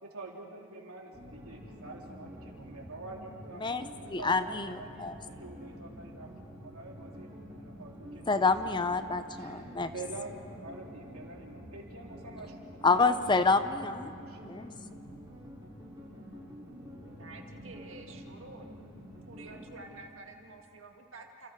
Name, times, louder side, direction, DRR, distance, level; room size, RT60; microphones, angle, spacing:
voice 1, 0.0-3.6 4.2-6.3 6.6-8.9 9.4-9.6 9.9-13.2 14.3-14.5, right 3 dB, 80° right, 3.5 m, -46 dB
sound 1, 1.1-19.8, equal, 20° right, 5.9 m, -48 dB
sound 2, 1.3-13.7, equal, 50° left, 5.7 m, -57 dB
voice 2, 3.6-5.2 8.3-9.9 12.8-14.1 14.4-14.7, left 4 dB, 20° left, 0.6 m, -28 dB
voice 3, 17.0-18.7 19.3-21.5, right 2 dB, 60° right, 1.9 m, -49 dB
29.5 x 27.0 x 4.7 m
head